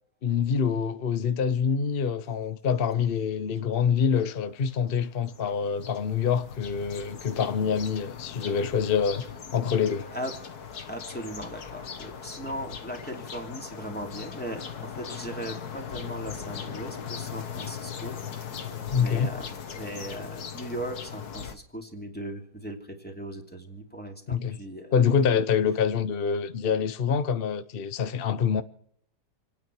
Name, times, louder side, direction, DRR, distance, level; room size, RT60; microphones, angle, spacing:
voice 1, 0.2-9.2 9.5-10.1 18.9-19.3 24.3-24.6 24.9-28.6, left 6 dB, 45° left, 0.9 m, -26 dB
sound 1, 3.6-3.7 4.0-21.6, left 7 dB, 70° left, 1.8 m, -39 dB
voice 2, 10.9-18.6 18.9-25.0, right 1 dB, 5° left, 2.7 m, -38 dB
29.0 x 9.8 x 4.6 m
omnidirectional pair, 1.7 m